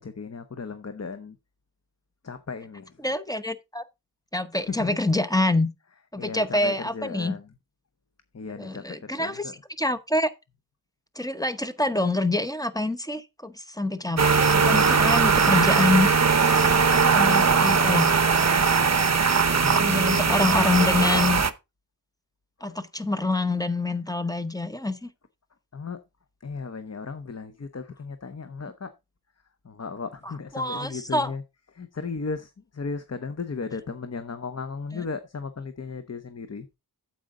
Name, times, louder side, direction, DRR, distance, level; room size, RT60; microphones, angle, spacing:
voice 1, 0.0-1.4 2.2-3.0 4.7-4.9 6.2-7.5 8.3-9.5 19.5-20.0 20.2-21.4 22.6-22.7 25.7-26.0 26.4-28.9 29.6-31.4 31.7-36.8, left 4 dB, 40° left, 0.8 m, -36 dB
voice 2, 3.0-3.8 4.3-5.7 6.1-7.4 8.6-9.5 9.8-10.3 11.1-16.1 16.3-16.8 17.1-18.2 19.8-21.4 22.6-25.1 30.5-31.3 34.9-35.0, left 2 dB, 10° left, 0.9 m, -26 dB
sound 1, 14.2-21.5, right 5 dB, 40° right, 0.8 m, -20 dB
9.2 x 7.7 x 3.7 m
wide cardioid pair, 70°, 39 cm